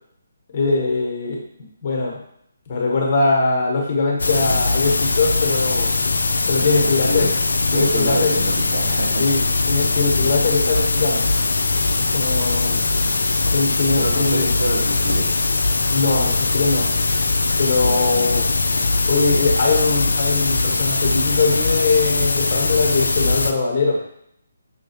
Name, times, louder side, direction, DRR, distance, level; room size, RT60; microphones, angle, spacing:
voice 1, 0.5-1.4 1.8-2.2 2.7-5.9 6.5-7.3 7.7-8.4 9.2-11.2 12.1-12.9 13.5-14.5 15.9-16.9 17.6-18.5 19.1-24.0, left 3 dB, 35° left, -1 dB, 1.2 m, -21 dB
sound 1, 4.2-23.5, left 3 dB, 65° left, 0.4 m, -20 dB
voice 2, 6.8-7.3 7.7-9.1 14.0-15.3 17.8-18.4 18.9-19.5, right 2 dB, 60° right, -1 dB, 1.2 m, -28 dB
5.8 x 2.7 x 2.9 m, 0.71 s
figure-of-eight pair, 145°, 0 cm